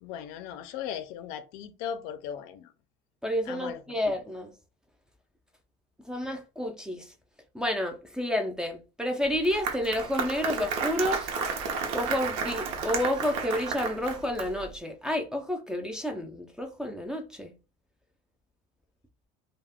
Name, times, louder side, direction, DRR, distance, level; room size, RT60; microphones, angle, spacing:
voice 1, 0.0-2.7 3.5-3.8, left 9 dB, 80° left, 0.5 m, -37 dB
voice 2, 3.2-4.5 6.1-7.1 7.5-11.3 11.9-17.5, left 1 dB, 5° right, 0.3 m, -30 dB
Applause, 9.2-14.7, right 5 dB, 80° right, 0.6 m, -32 dB
2.3 x 2.1 x 3.4 m
cardioid pair, 150°, 16 cm